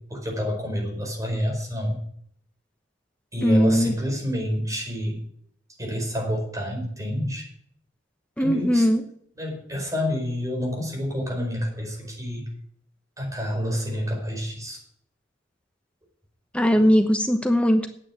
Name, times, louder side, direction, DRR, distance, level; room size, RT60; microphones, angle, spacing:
voice 1, 0.0-2.0 3.3-5.2 5.8-7.5 8.4-8.9 9.4-12.5 13.2-14.8 16.7-16.9, equal, 20° right, 0 dB, 4.8 m, -28 dB
voice 2, 3.4-3.9 8.4-9.0 16.5-17.9, equal, 5° left, 6 dB, 1.0 m, -19 dB
9.6 x 8.7 x 8.7 m, 0.66 s
head